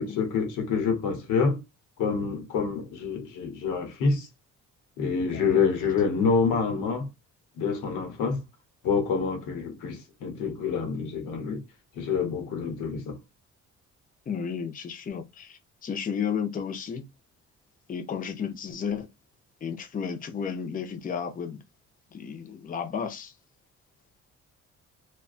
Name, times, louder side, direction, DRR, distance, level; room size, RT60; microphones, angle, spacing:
voice 1, 0.0-1.6 2.0-4.3 5.0-7.1 7.6-8.4 8.8-11.6 12.0-13.2, left 5 dB, 90° left, 0.9 m, -27 dB
voice 2, 14.3-17.1 17.9-19.1 19.6-21.6 22.1-23.3, left 7 dB, 30° left, 0.5 m, -33 dB
2.4 x 2.2 x 2.4 m
cardioid pair, 90°, 30 cm